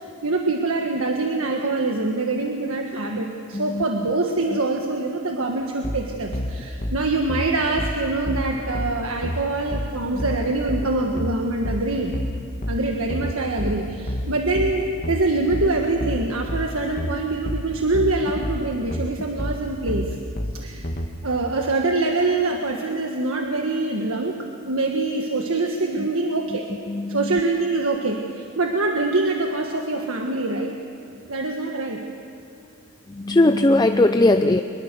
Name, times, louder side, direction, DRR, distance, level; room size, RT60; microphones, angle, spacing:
voice 1, 0.0-12.1 12.7-20.2 20.5-20.8 21.2-24.4 24.6-26.6 27.1-30.8 31.3-32.0, right 2 dB, 85° right, 2 dB, 1.5 m, -24 dB
voice 2, 3.5-3.8 4.5-4.6 10.1-10.2 26.0-26.1 26.9-27.4 33.1-34.6, left 2 dB, 20° left, 7 dB, 0.5 m, -19 dB
sound 1, 5.8-21.1, equal, 40° left, 1.6 m, -29 dB
24.0 x 21.5 x 6.8 m, 2.7 s
head